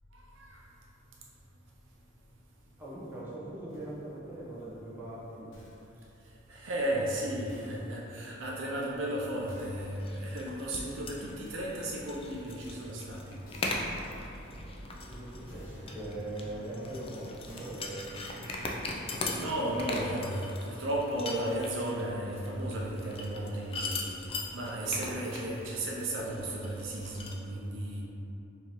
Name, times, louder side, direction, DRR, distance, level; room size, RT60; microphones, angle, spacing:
voice 1, 0.1-0.6 6.5-13.4 14.1-15.5 19.3-24.2 24.5-28.0, right 1 dB, 70° right, -3 dB, 0.5 m, -35 dB
voice 2, 2.8-5.5 14.9-18.6 19.0-19.5 20.1-20.2, right 1 dB, 10° right, -9 dB, 0.8 m, -41 dB
sound 1, 3.7-4.1 5.5-6.0 7.5-8.0 9.5-10.0 11.4-12.2 13.4-14.1 15.4-16.1 17.5-18.1 19.5-20.1 21.5-22.1, left 1 dB, 90° left, 0.9 m, -57 dB
sound 2, 9.4-27.3, left 2 dB, 30° left, 0.3 m, -40 dB
4.7 x 2.7 x 2.9 m, 2.9 s
head